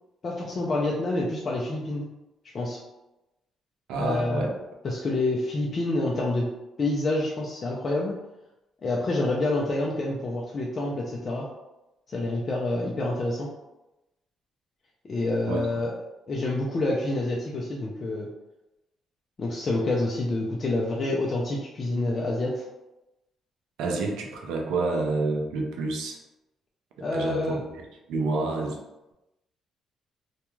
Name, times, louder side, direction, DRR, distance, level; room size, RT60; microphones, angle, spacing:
voice 1, 0.2-2.1 2.5-2.8 4.0-4.5 4.8-6.5 6.8-8.2 8.8-11.5 12.1-13.5 15.0-15.9 16.3-18.3 19.4-22.6 27.0-27.6, left 2 dB, 40° left, -3 dB, 0.4 m, -27 dB
voice 2, 3.9-4.5 15.5-15.8 23.8-26.2 27.1-27.8 28.1-28.8, right 3 dB, 85° right, 2 dB, 0.5 m, -28 dB
2.3 x 2.2 x 3.0 m, 0.97 s
cardioid pair, 95°, 0 cm